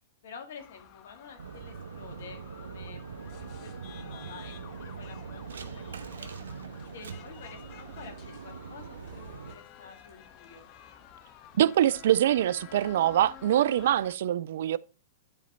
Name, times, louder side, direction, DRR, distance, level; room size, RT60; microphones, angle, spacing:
voice 1, 0.2-3.7 4.0-6.3 6.8-10.7, left 6 dB, 70° left, 2.3 m, -49 dB
sound 1, 0.6-14.1, left 10 dB, 45° left, 1.1 m, -51 dB
sound 2, 1.4-9.5, right 6 dB, 85° right, 0.9 m, -42 dB
voice 2, 11.6-14.8, right 11 dB, 65° right, 0.4 m, -24 dB
10.5 x 4.3 x 4.3 m
hypercardioid pair, 115°, 0 cm